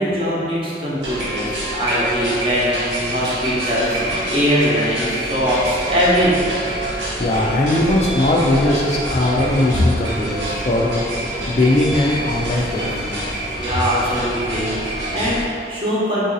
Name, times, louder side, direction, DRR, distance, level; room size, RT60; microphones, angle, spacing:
voice 1, 0.0-6.5 11.3-11.6 12.2-12.4 13.6-16.2, equal, 30° right, -7 dB, 0.8 m, -21 dB
sound 1, 1.0-15.5, right 1 dB, 90° right, 1.0 m, -26 dB
voice 2, 7.2-11.0 11.5-13.0, left 1 dB, 35° left, -3 dB, 0.4 m, -19 dB
3.8 x 2.7 x 3.9 m, 2.3 s
head